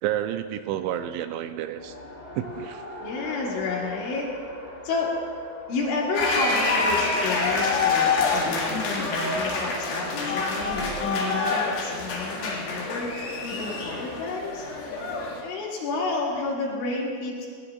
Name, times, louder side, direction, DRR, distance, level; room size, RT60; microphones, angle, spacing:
voice 1, 0.0-2.0 2.4-2.8, right 11 dB, 85° right, 9 dB, 2.8 m, -30 dB
Race car auto racing, 1.7-10.8, left 1 dB, 25° left, 1.2 m, -43 dB
voice 2, 3.0-4.3 4.8-5.1 5.7-13.1 13.4-14.7 15.4-17.5, left 3 dB, 75° left, -4 dB, 4.7 m, -30 dB
sound 1, 6.1-15.4, left 3 dB, 60° left, 3.3 m, -26 dB
19.5 x 18.0 x 2.4 m, 2.2 s
omnidirectional pair, 5.5 m